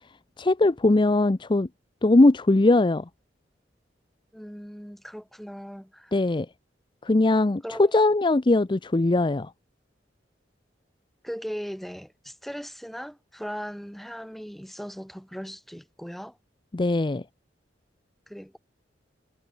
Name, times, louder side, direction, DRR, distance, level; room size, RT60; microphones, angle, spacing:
voice 1, 0.4-1.7 2.0-3.1 6.1-6.5 7.0-9.5 16.7-17.2, left 2 dB, 25° left, 0.5 m, -20 dB
voice 2, 4.3-6.1 7.6-8.0 11.2-16.4 18.3-18.6, equal, ahead, 2.5 m, -38 dB
head